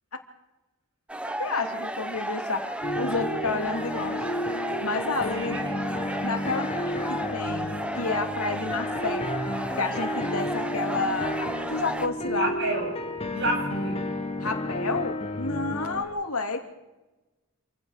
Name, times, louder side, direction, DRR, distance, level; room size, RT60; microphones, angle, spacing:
sound 1, 1.1-12.1, right 1 dB, 5° right, 1.1 m, -33 dB
voice 1, 1.4-4.3 4.8-5.6 6.2-9.4 9.8-12.5 14.4-16.6, left 3 dB, 90° left, 5 dB, 2.9 m, -30 dB
sound 2, 2.8-16.0, left 1 dB, 25° left, 1.8 m, -32 dB
voice 2, 5.3-5.6 12.3-12.9 13.3-14.0, right 2 dB, 55° right, 2 dB, 7.8 m, -29 dB
27.5 x 16.5 x 6.7 m, 1.0 s
head